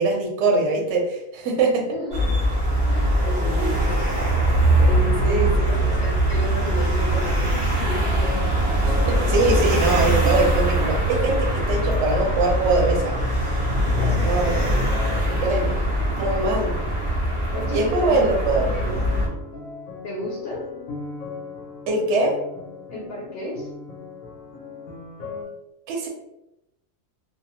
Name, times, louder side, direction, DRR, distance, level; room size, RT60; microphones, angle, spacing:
voice 1, 0.0-1.8 5.2-6.1 8.8-13.1 14.2-14.6 15.4-15.7 16.1-16.7 17.7-18.7 21.9-22.3 25.9-26.1, right 2 dB, 65° right, 1 dB, 0.9 m, -22 dB
voice 2, 1.8-2.5 2.8-8.2 13.9-14.3 14.6-15.3 17.5-18.9 20.0-20.7 22.9-23.7, left 1 dB, 60° left, -4 dB, 0.7 m, -33 dB
sound 1, 2.1-19.3, right 1 dB, 35° right, 0.5 m, -22 dB
sound 2, 7.9-25.4, left 4 dB, 90° left, 1.1 m, -38 dB
2.6 x 2.0 x 2.8 m, 0.87 s
omnidirectional pair, 1.4 m